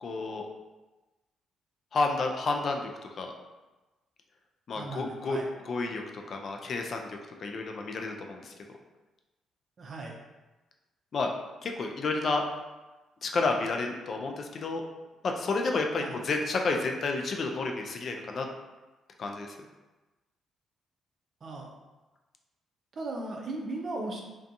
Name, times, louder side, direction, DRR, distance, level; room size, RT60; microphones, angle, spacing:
voice 1, 0.0-0.5 1.9-3.3 4.7-5.4 5.6-8.5 11.1-11.3 11.6-12.4 13.2-14.8 15.2-18.5 19.2-19.6, left 3 dB, 50° left, 2 dB, 0.3 m, -31 dB
voice 2, 4.7-5.5 9.8-10.2 16.0-16.2 21.4-21.7 23.0-24.2, right 2 dB, 45° right, 0 dB, 0.5 m, -37 dB
2.5 x 2.3 x 2.6 m, 1.1 s
cardioid pair, 90°, 0 cm